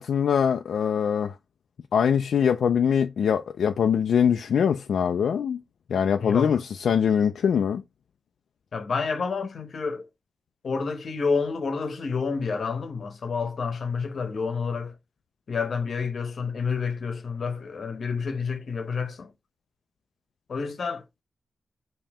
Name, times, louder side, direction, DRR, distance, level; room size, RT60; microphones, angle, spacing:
voice 1, 0.0-1.3 1.9-5.6 5.9-7.8, left 7 dB, 80° left, 0.3 m, -23 dB
voice 2, 6.2-6.6 8.7-10.1 10.6-14.9 15.5-19.3 20.5-21.2, left 5 dB, 50° left, 0.9 m, -29 dB
5.3 x 2.8 x 3.5 m
wide cardioid pair, 155°, 0 cm